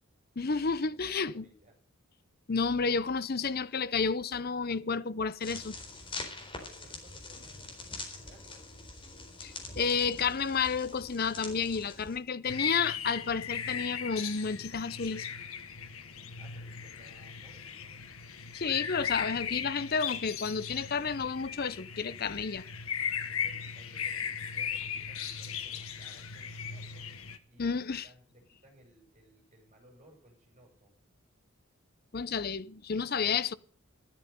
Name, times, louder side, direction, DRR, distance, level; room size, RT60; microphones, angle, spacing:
voice 1, 0.4-1.4 2.5-5.8 9.4-15.3 18.5-22.6 27.6-28.1 32.1-33.5, left 5 dB, 45° left, 0.6 m, -31 dB
voice 2, 0.9-1.8 6.6-8.6 16.4-18.0 23.3-27.1 27.5-30.9, right 1 dB, 30° right, 7.3 m, -60 dB
sound 1, 5.4-12.2, left 3 dB, 25° left, 4.1 m, -44 dB
sound 2, 12.5-27.4, left 7 dB, 75° left, 1.5 m, -38 dB
13.5 x 13.0 x 5.4 m
head